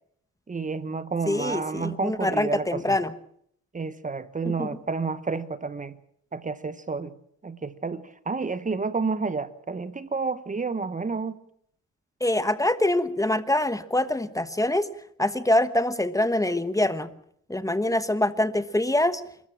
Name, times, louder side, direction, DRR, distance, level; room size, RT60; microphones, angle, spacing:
voice 1, 0.5-3.0 3.7-5.9 6.3-7.1 7.4-11.3, right 4 dB, 25° right, 14 dB, 1.1 m, -30 dB
voice 2, 1.3-3.1 4.4-4.7 12.2-14.9 15.2-17.1 17.5-19.2, left 1 dB, 10° left, 12 dB, 1.2 m, -24 dB
28.5 x 13.5 x 7.5 m, 0.68 s
cardioid pair, 90°, 30 cm